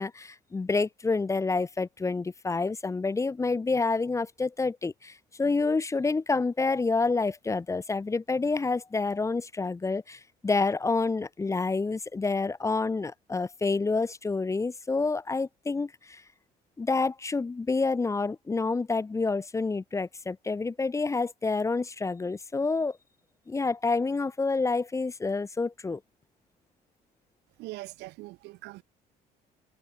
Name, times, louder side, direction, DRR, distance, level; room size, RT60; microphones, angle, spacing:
voice 1, 0.0-16.2 16.8-23.0 23.5-26.0, left 3 dB, 15° left, 0.7 m, -28 dB
voice 2, 27.6-28.8, right 20 dB, 85° right, 0.8 m, -42 dB
cardioid pair, 110°, 17 cm